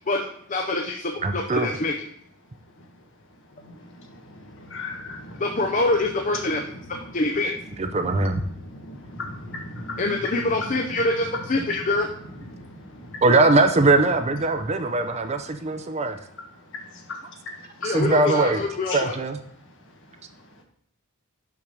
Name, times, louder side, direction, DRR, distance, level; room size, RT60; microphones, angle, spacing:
voice 1, 0.1-1.9 5.4-6.6 7.1-7.5 10.0-12.0 17.8-19.1, left 2 dB, 35° left, 2 dB, 0.6 m, -25 dB
voice 2, 1.2-1.7 7.8-8.4 13.2-16.2 17.8-18.6 18.9-19.4, right 2 dB, 30° right, 7 dB, 0.5 m, -21 dB
voice 3, 3.6-5.5 6.6-7.1 8.0-8.2 8.6-11.0 11.3-11.8 12.5-13.2 16.7-17.9 18.9-19.0, left 2 dB, 60° left, 1 dB, 1.6 m, -37 dB
6.3 x 5.9 x 5.3 m, 0.67 s
head